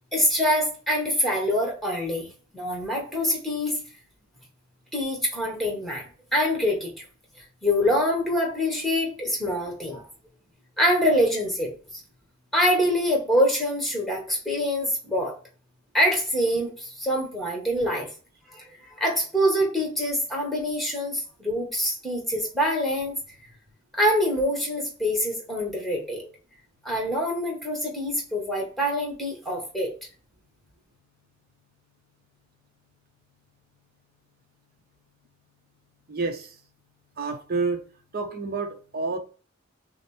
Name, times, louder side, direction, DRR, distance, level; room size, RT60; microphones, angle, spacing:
voice 1, 0.1-2.3 2.5-3.8 4.9-6.0 6.3-6.9 7.6-10.0 10.8-12.0 12.5-15.3 15.9-18.1 18.5-23.2 23.9-26.2 26.8-29.9, equal, ahead, 1.3 m, -25 dB
voice 2, 36.1-36.6 37.2-37.8 38.1-39.2, right 4 dB, 45° right, 0.8 m, -29 dB
6.2 x 2.1 x 3.2 m
head